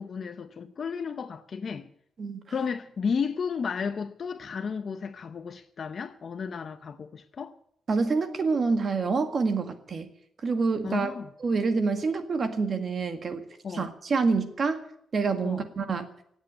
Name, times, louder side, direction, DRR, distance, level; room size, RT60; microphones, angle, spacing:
voice 1, 0.0-1.9 2.5-7.5 10.8-11.3 13.6-13.9 15.4-15.6, left 6 dB, 45° left, 0.8 m, -33 dB
voice 2, 7.9-10.1 10.4-11.1 11.4-13.5 13.7-14.8 15.1-16.1, right 4 dB, 40° right, 1.8 m, -27 dB
17.5 x 8.2 x 9.5 m
wide cardioid pair, 140°, 0 cm